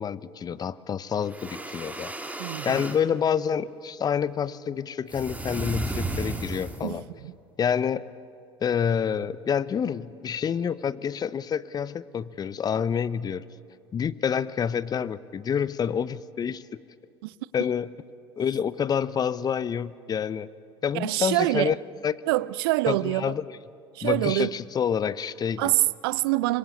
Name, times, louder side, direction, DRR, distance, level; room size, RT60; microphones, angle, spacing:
voice 1, 0.0-2.1 2.6-7.0 7.6-8.1 8.6-13.5 13.9-16.8 17.5-17.9 18.4-20.5 20.8-21.8 22.0-22.2 22.9-23.6 24.0-25.8, left 7 dB, 30° left, 0.8 m, -28 dB
sound 1, 1.2-3.0 5.1-7.0, right 2 dB, 10° right, 2.5 m, -34 dB
voice 2, 2.4-2.8 6.8-7.0 7.2-7.3 17.2-17.3 20.9-21.7 22.3-23.3 24.0-24.5 25.6-26.6, right 19 dB, 65° right, 0.6 m, -25 dB
25.5 x 23.0 x 8.5 m
figure-of-eight pair, 65°, 13 cm